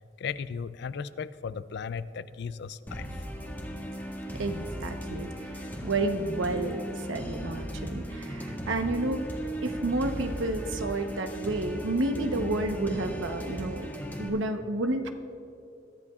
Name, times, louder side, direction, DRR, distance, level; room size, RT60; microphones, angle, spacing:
voice 1, 0.2-3.1, left 6 dB, 60° left, 15 dB, 0.4 m, -36 dB
sound 1, 2.9-14.3, equal, 10° left, 1.6 m, -37 dB
voice 2, 4.4-9.3 9.6-13.9 14.2-15.1, right 2 dB, 90° right, 6 dB, 0.9 m, -30 dB
22.5 x 13.0 x 2.4 m, 2.6 s
head